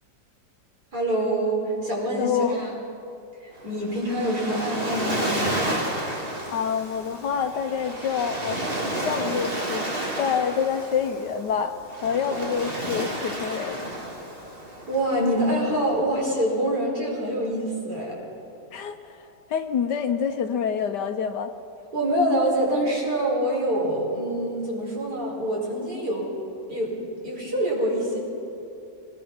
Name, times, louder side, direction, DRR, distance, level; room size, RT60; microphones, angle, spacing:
voice 1, 0.9-2.7 3.4-5.3 14.9-18.1 21.9-26.3 26.7-26.9 27.2-28.2, right 1 dB, 55° right, -4 dB, 5.6 m, -25 dB
voice 2, 2.2-2.6 6.5-8.6 9.0-11.8 12.0-13.8 18.7-19.2 19.5-21.5, left 7 dB, 70° left, 9 dB, 1.4 m, -27 dB
Waves surf, 3.6-16.0, right 1 dB, 30° right, 2.9 m, -31 dB
24.0 x 20.5 x 5.5 m, 2.8 s
omnidirectional pair, 2.0 m